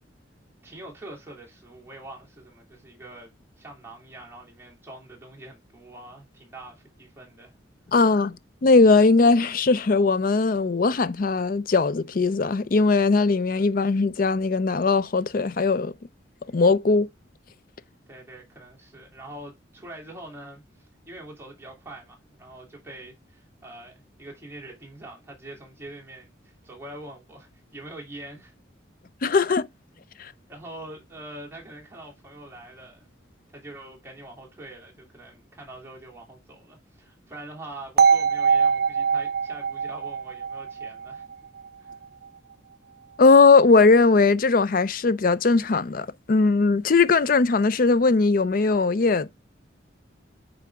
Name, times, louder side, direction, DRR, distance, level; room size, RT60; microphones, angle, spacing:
voice 1, 0.6-3.3 3.6-7.6 16.4-16.5 18.1-28.5 30.5-33.1 33.5-41.3 41.8-42.0, right 1 dB, 10° right, 2.9 m, -44 dB
voice 2, 7.9-8.4 8.6-15.9 16.5-17.1 29.2-29.7 30.2-30.3 43.2-49.3, left 4 dB, 45° left, 0.5 m, -19 dB
sound 1, 38.0-42.0, right 6 dB, 55° right, 0.4 m, -23 dB
8.4 x 4.8 x 3.5 m
head